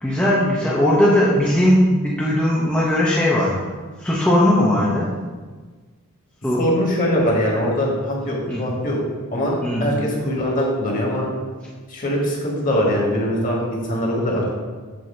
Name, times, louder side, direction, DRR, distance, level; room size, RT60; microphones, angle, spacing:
voice 1, 0.0-3.6 4.0-5.1 6.4-6.7 8.5-8.6 9.6-10.0, left 1 dB, 5° left, -6 dB, 0.7 m, -18 dB
voice 2, 6.6-9.0 9.3-11.2 11.9-14.5, equal, 40° left, -3 dB, 1.5 m, -22 dB
7.7 x 2.8 x 5.5 m, 1.4 s
head